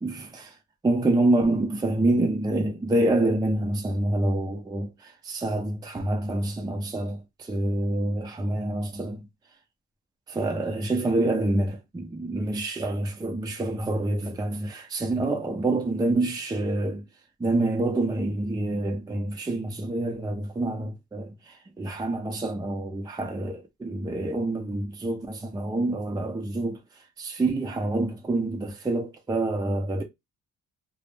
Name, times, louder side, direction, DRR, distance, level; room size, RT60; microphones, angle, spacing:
voice 1, 0.0-0.5 0.8-9.2 10.3-17.0 17.4-26.8 27.2-30.0, right 2 dB, 15° right, 0.5 m, -27 dB
2.0 x 2.0 x 3.2 m
cardioid pair, 90°, 30 cm